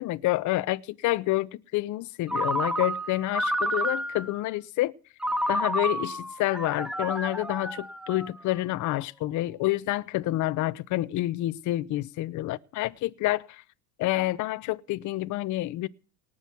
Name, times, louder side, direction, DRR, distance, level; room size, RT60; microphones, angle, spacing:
voice 1, 0.0-4.9 5.5-13.6 14.0-15.9, left 17 dB, 40° left, 0.8 m, -28 dB
Ringtone, 2.3-4.4 5.2-8.6, right 1 dB, ahead, 0.6 m, -30 dB
18.5 x 6.5 x 9.0 m
supercardioid pair, 120°, 47 cm